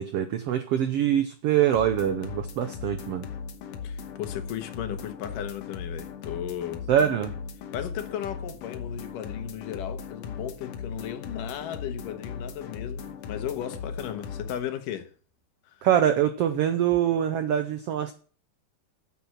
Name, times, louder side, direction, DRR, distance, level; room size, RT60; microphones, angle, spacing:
voice 1, 0.0-3.3 6.9-7.3 15.8-18.1, right 10 dB, 90° right, 1.3 m, -24 dB
sound 1, 1.7-14.6, left 6 dB, 60° left, 2.0 m, -38 dB
voice 2, 3.8-6.9 7.7-15.1 15.7-15.9, left 10 dB, 80° left, 2.8 m, -35 dB
9.7 x 7.8 x 6.0 m
omnidirectional pair, 3.7 m